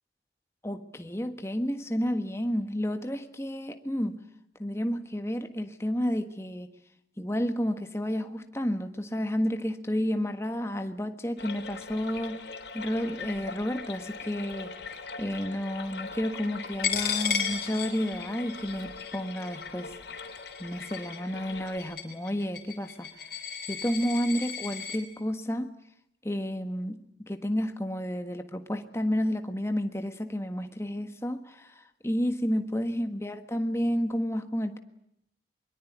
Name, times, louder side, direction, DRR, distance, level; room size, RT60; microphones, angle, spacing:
voice 1, 0.6-4.2 4.6-6.7 7.2-12.4 12.7-14.7 15.2-19.9 20.6-25.7 26.2-34.8, equal, 15° left, 7 dB, 1.5 m, -31 dB
sound 1, 11.4-21.8, left 4 dB, 80° left, 3.7 m, -42 dB
Coin (dropping), 16.8-25.0, left 7 dB, 55° left, 4.5 m, -35 dB
23.0 x 22.5 x 9.4 m, 0.76 s
head